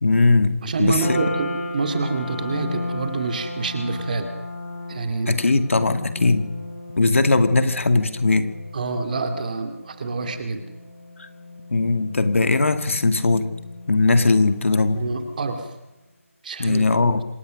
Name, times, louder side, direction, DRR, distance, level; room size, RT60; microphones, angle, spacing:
voice 1, 0.0-1.2 5.3-6.5 7.0-8.5 11.2-11.3 11.7-13.5 13.9-15.1 16.6-17.2, left 3 dB, 60° left, 9 dB, 2.1 m, -19 dB
voice 2, 0.6-4.3 4.9-5.4 6.0-6.1 8.7-10.6 14.9-15.7 16.4-17.1, right 4 dB, 35° right, 6 dB, 2.5 m, -27 dB
sound 1, 1.0-15.4, left 1 dB, 15° left, 7.0 m, -35 dB
26.5 x 17.0 x 6.4 m, 1.0 s
figure-of-eight pair, 165°, 8 cm